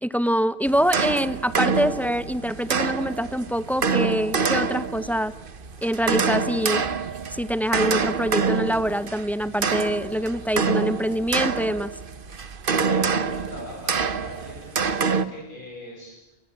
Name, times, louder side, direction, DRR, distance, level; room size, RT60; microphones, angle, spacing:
voice 1, 0.0-5.3 5.8-6.8 7.3-11.9, equal, ahead, 15 dB, 0.5 m, -25 dB
sound 1, 0.7-15.2, right 5 dB, 50° right, 1.2 m, -26 dB
voice 2, 12.3-16.4, left 1 dB, 45° left, -2 dB, 8.2 m, -42 dB
26.0 x 20.5 x 8.5 m, 1.0 s
omnidirectional pair, 1.2 m